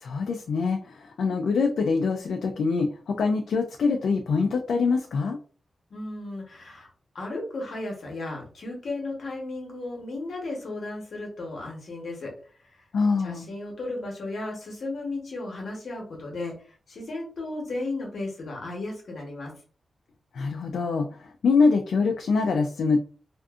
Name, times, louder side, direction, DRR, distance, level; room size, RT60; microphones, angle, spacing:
voice 1, 0.0-5.4 12.9-13.5 20.3-21.1 21.4-23.0, left 4 dB, 90° left, 3 dB, 0.3 m, -24 dB
voice 2, 5.9-6.9 7.1-12.4 12.7-12.8 13.2-16.6 16.9-19.5, left 2 dB, 60° left, 0 dB, 1.0 m, -34 dB
2.5 x 2.4 x 2.4 m, 0.40 s
wide cardioid pair, 155°, 0 cm